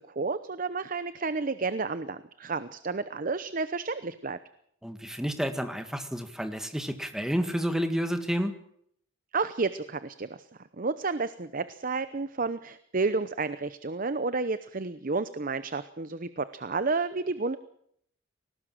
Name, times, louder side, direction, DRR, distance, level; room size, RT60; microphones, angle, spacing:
voice 1, 0.2-4.4 9.3-10.4 10.8-17.6, right 4 dB, 45° right, 13 dB, 0.8 m, -31 dB
voice 2, 4.8-8.6, equal, 5° right, 7 dB, 1.8 m, -30 dB
21.0 x 18.5 x 7.6 m, 0.68 s
head